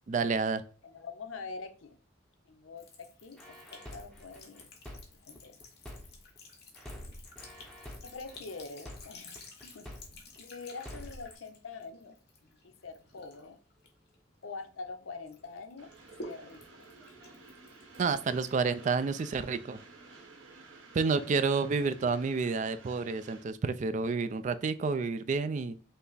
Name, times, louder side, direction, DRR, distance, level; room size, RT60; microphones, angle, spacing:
voice 1, 0.1-0.6 18.0-19.8 20.9-25.7, right 4 dB, 40° right, 0.3 m, -29 dB
voice 2, 0.8-2.0 2.4-4.7 5.2-5.6 8.0-9.9 10.4-12.2 12.4-13.6 14.4-15.9 16.2-16.9 21.8-22.2, left 4 dB, 85° left, 0.6 m, -45 dB
Sink (filling or washing) / Trickle dribble, 2.8-14.9 15.3-19.1, left 2 dB, 55° left, 1.1 m, -53 dB
sound 1, 3.4-6.4 6.7-10.4 10.7-11.3, equal, 5° left, 0.8 m, -47 dB
Train, 15.8-23.4, right 3 dB, 85° right, 1.1 m, -53 dB
5.6 x 2.0 x 3.9 m
head